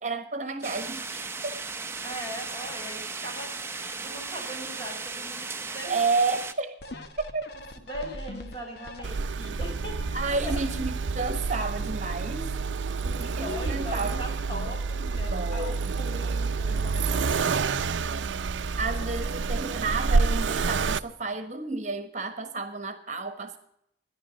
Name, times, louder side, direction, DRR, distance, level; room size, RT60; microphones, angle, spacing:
voice 1, 0.0-1.6 3.8-4.0 5.9-6.8 7.3-7.5 10.1-12.5 13.2-14.8 15.3-15.9 18.8-23.6, right 3 dB, 40° right, 9 dB, 1.3 m, -31 dB
sound 1, 0.6-6.5, right 4 dB, 15° right, 0.8 m, -36 dB
voice 2, 2.0-5.9 7.9-10.6 13.0-17.8 18.7-19.1, equal, 30° left, 0 dB, 4.8 m, -40 dB
sound 2, 6.8-9.5 10.0-10.1, left 1 dB, 60° left, 1.2 m, -42 dB
Accelerating revving vroom, 9.0-21.0, right 4 dB, 85° right, 0.5 m, -28 dB
14.0 x 10.5 x 6.3 m, 0.79 s
head